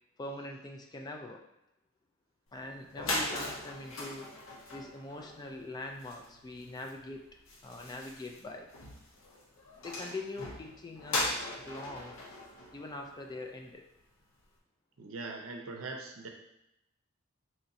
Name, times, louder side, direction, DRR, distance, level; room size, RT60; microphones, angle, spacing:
voice 1, 0.2-1.4 2.5-4.3 4.7-7.3 7.6-8.7 9.8-12.2 12.7-13.9, left 2 dB, 20° left, 2 dB, 0.3 m, -43 dB
sound 1, 2.6-2.7 2.9-13.6, left 1 dB, 75° left, 0.8 m, -39 dB
voice 2, 15.0-16.3, right 3 dB, 70° right, 2 dB, 0.6 m, -41 dB
3.0 x 2.6 x 4.0 m, 0.86 s
head